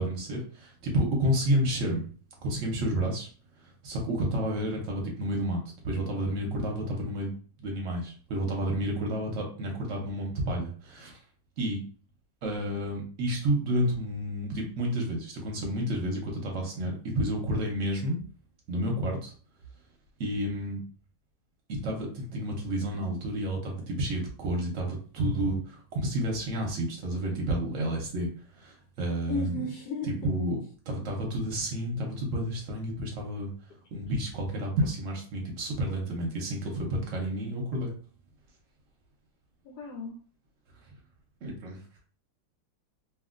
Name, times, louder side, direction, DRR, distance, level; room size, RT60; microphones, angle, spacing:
voice 1, 0.0-2.1 2.4-3.3 3.6-11.2 11.6-11.8 12.4-18.2 18.7-19.3 20.2-20.8 21.7-29.6 30.0-30.6 30.9-33.5 33.9-37.9 41.4-41.8, right 1 dB, 55° right, 0 dB, 1.0 m, -30 dB
voice 2, 29.3-30.1 39.6-40.1, left 3 dB, 70° left, 1 dB, 1.1 m, -34 dB
3.0 x 2.7 x 2.5 m, 0.42 s
omnidirectional pair, 2.0 m